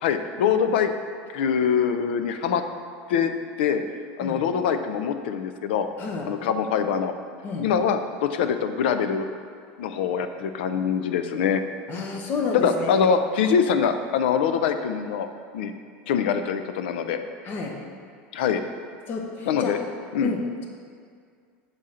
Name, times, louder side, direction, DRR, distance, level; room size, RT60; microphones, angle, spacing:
voice 1, 0.0-0.9 1.3-2.6 3.1-3.3 3.6-3.8 4.2-5.9 6.2-7.1 7.6-9.3 9.8-11.6 12.5-15.3 15.5-15.7 16.1-17.2 18.3-18.6 19.5-19.8 20.1-20.3, left 7 dB, 90° left, 9 dB, 0.4 m, -23 dB
voice 2, 11.9-12.9 17.4-17.7 19.1-19.7 20.2-20.7, left 4 dB, 40° left, 1 dB, 0.8 m, -29 dB
6.3 x 3.7 x 4.2 m, 2.1 s
supercardioid pair, 140°, 5 cm